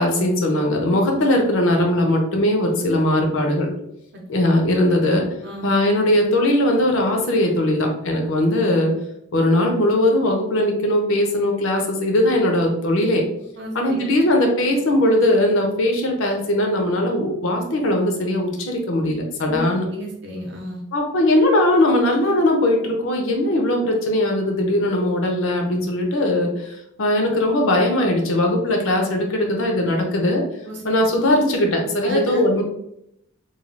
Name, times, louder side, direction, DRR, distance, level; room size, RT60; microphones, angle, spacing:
voice 1, 0.0-3.7 4.3-5.3 5.6-8.9 9.3-13.2 13.7-19.8 20.9-30.4 30.8-32.6, left 1 dB, 65° left, 2 dB, 0.5 m, -19 dB
voice 2, 13.6-14.1 19.5-19.7 19.9-20.8 30.6-30.8 32.0-32.4, left 2 dB, 50° right, -1 dB, 0.7 m, -30 dB
3.1 x 2.3 x 2.5 m, 0.78 s
head